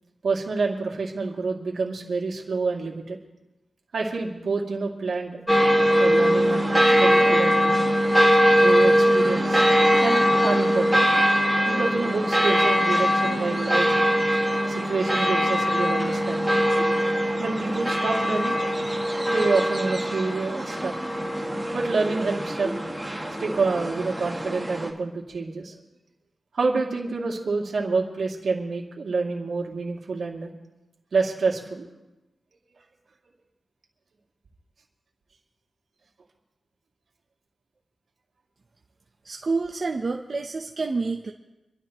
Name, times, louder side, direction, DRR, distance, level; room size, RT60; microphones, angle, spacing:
voice 1, 0.2-3.2 3.9-5.4 6.0-7.8 8.6-9.6 10.0-11.0 11.7-14.1 14.7-16.6 17.4-18.6 19.2-20.9 21.7-22.8 23.4-25.7 26.5-30.5 31.1-31.9, right 4 dB, 70° right, -1 dB, 2.6 m, -27 dB
sound 1, 5.5-24.9, equal, 5° right, 2.0 m, -22 dB
voice 2, 39.2-41.3, right 3 dB, 45° right, 1 dB, 0.9 m, -28 dB
27.0 x 12.5 x 3.1 m, 1.0 s
wide cardioid pair, 110°, 0 cm